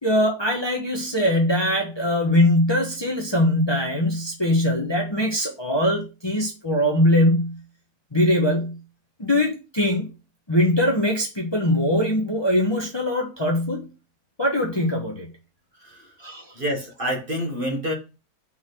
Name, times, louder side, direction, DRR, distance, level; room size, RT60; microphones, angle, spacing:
voice 1, 0.0-7.6 8.1-8.8 9.2-10.1 10.5-13.8 14.4-15.3 16.2-16.4, left 1 dB, 20° left, 1.3 m, -21 dB
voice 2, 15.8-16.1 16.5-17.9, equal, 35° right, 1.9 m, -27 dB
5.8 x 4.2 x 6.2 m
omnidirectional pair, 1.6 m